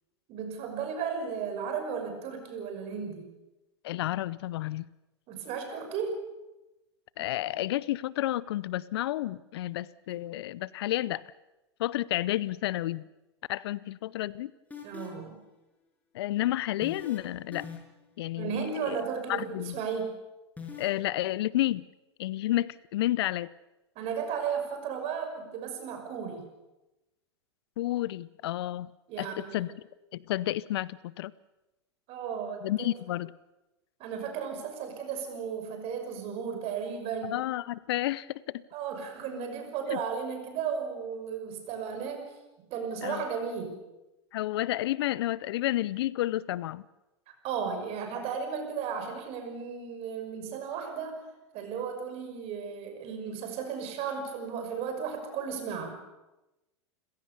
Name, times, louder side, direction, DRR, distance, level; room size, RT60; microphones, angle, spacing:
voice 1, 0.3-3.3 5.3-6.2 14.8-15.4 18.4-20.2 24.0-26.5 29.1-29.5 32.1-32.9 34.0-37.4 38.7-42.3 42.7-43.8 47.4-51.2 51.5-56.0, right 6 dB, 45° right, 6 dB, 6.0 m, -34 dB
voice 2, 3.8-4.9 7.2-11.2 11.8-13.0 13.5-14.5 16.1-17.7 18.2-19.0 19.3-19.8 20.8-21.9 22.2-23.5 27.8-28.9 29.2-29.7 30.1-31.3 32.6-33.3 37.3-38.6 39.9-40.0 43.0-43.2 44.3-46.8, left 15 dB, 60° left, 21 dB, 0.7 m, -31 dB
sound 1, 14.7-15.3 16.8-17.2 17.5-18.0 20.6-20.9, left 6 dB, 10° left, 5.9 m, -41 dB
29.5 x 16.5 x 6.9 m, 1.0 s
hypercardioid pair, 95°, 15 cm